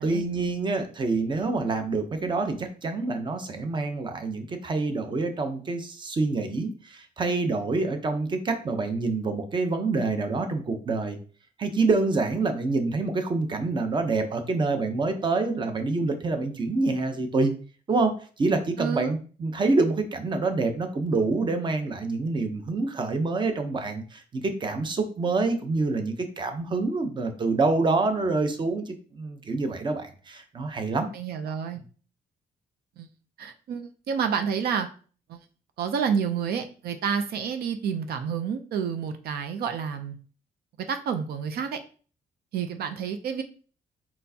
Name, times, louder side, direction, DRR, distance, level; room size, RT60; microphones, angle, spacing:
voice 1, 0.0-11.2 11.6-17.5 17.9-31.1, right 3 dB, 30° right, 7 dB, 0.7 m, -27 dB
voice 2, 18.8-19.2 31.1-31.8 33.0-33.1 33.4-34.9 35.3-35.4 35.8-40.2 40.9-41.8 42.5-43.4, right 7 dB, 80° right, 8 dB, 0.6 m, -29 dB
4.3 x 4.3 x 2.8 m, 0.39 s
cardioid pair, 135°, 16 cm